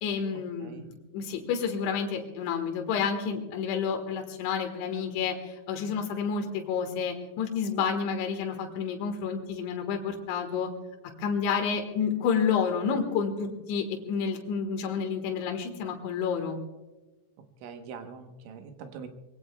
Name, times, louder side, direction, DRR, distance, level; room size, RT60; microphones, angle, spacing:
voice 1, 0.0-10.7 11.2-16.6, left 6 dB, 80° left, 3 dB, 3.8 m, -30 dB
voice 2, 17.6-19.1, right 6 dB, 85° right, 6 dB, 3.6 m, -43 dB
24.0 x 21.0 x 2.3 m, 1.2 s
omnidirectional pair, 5.4 m